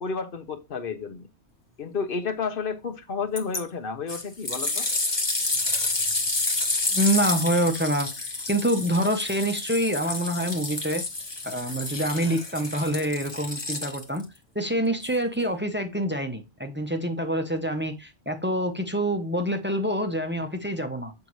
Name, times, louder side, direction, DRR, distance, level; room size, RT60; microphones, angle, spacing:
voice 1, 0.0-1.3 1.8-4.9, left 5 dB, 55° left, 1.0 m, -31 dB
sound 1, 3.4-3.6 4.1-14.2 15.0-15.1, left 2 dB, 25° left, 1.0 m, -29 dB
voice 2, 6.9-11.0 11.4-14.2 14.5-21.1, equal, 10° right, 0.6 m, -26 dB
7.4 x 5.2 x 3.1 m
omnidirectional pair, 1.2 m